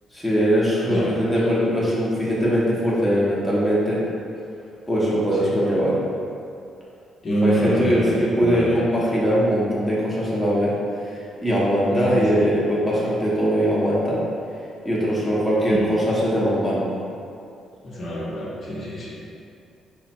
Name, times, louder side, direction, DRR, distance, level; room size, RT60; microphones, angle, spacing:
voice 1, 0.1-4.0 4.9-6.0 7.4-10.7 11.0-14.2 14.8-16.8, equal, 10° left, -7 dB, 0.8 m, -21 dB
voice 2, 7.2-8.8 11.9-12.4 15.6-15.9 17.8-19.1, equal, 50° left, -6 dB, 0.8 m, -26 dB
3.4 x 2.2 x 4.2 m, 2.5 s
cardioid pair, 90°, 0 cm